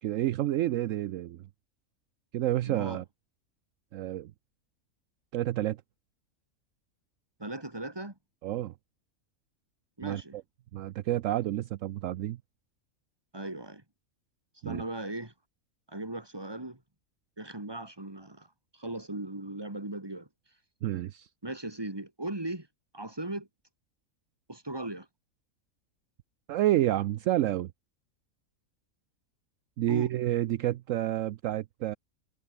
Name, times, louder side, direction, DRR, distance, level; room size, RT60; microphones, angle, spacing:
voice 1, 0.0-1.5 2.3-3.0 3.9-4.3 5.3-5.8 8.4-8.7 10.0-10.4 10.7-12.4 14.6-14.8 20.8-21.3 26.5-27.7 29.8-32.0, right 14 dB, 70° right, 0.9 m, -29 dB
voice 2, 2.7-3.0 7.4-8.1 10.0-10.3 13.3-13.8 14.6-15.3 15.9-16.8 17.4-18.5 18.7-20.3 21.4-22.7 22.9-23.5 24.5-25.1 29.9-30.1, right 2 dB, 15° right, 2.7 m, -37 dB
omnidirectional pair, 1.4 m